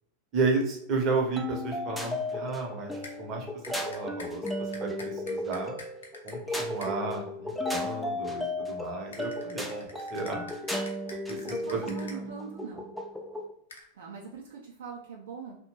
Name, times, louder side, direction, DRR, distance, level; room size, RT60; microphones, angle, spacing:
voice 1, 0.3-3.5 3.8-5.7 6.2-10.4 11.3-11.9 12.1-12.2, right 3 dB, 35° right, 1 dB, 0.7 m, -32 dB
sound 1, 1.4-13.5, left 1 dB, ahead, 0.4 m, -35 dB
sound 2, 3.0-3.2 3.6-6.9 9.1-12.2 13.7-13.8, left 2 dB, 70° left, 0.6 m, -46 dB
voice 2, 11.4-12.9 13.9-15.6, right 5 dB, 65° right, -2 dB, 0.4 m, -42 dB
2.8 x 2.1 x 2.8 m, 0.72 s
figure-of-eight pair, 90°, 0 cm